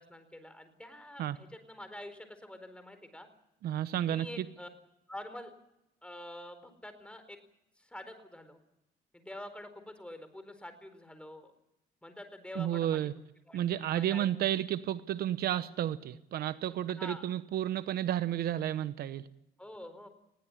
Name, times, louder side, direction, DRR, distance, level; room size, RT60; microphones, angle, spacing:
voice 1, 0.0-3.3 4.0-4.7 5.1-5.5 6.0-7.4 7.8-8.6 9.1-11.5 12.0-13.1 13.5-14.3 16.9-17.3 19.6-20.1, left 1 dB, 5° left, 9 dB, 4.3 m, -47 dB
voice 2, 3.6-4.4 12.6-13.1 13.5-19.3, right 11 dB, 70° right, 14 dB, 0.9 m, -32 dB
21.0 x 16.5 x 9.9 m, 0.86 s
cardioid pair, 100°, 17 cm